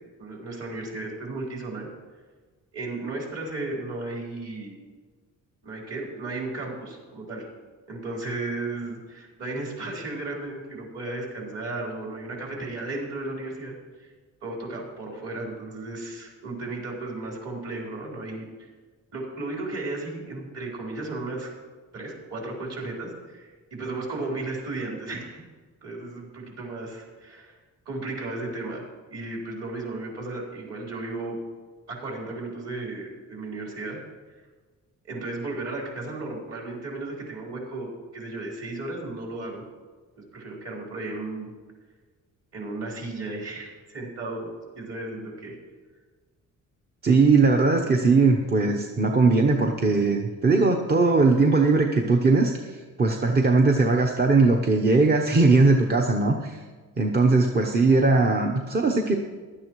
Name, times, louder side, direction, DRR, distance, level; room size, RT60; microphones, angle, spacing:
voice 1, 0.2-1.9 2.7-4.7 5.6-7.5 7.9-14.1 14.4-18.7 19.1-21.5 21.9-25.4 25.8-27.6 27.9-28.8 29.1-31.4 31.9-34.0 35.1-39.6 40.3-41.5 42.5-44.5 44.8-45.6, right 2 dB, 50° right, -3 dB, 4.1 m, -34 dB
voice 2, 47.0-56.6 57.0-59.1, right 3 dB, 30° right, 2 dB, 0.8 m, -20 dB
16.0 x 11.5 x 3.1 m, 1.4 s
cardioid pair, 135°, 32 cm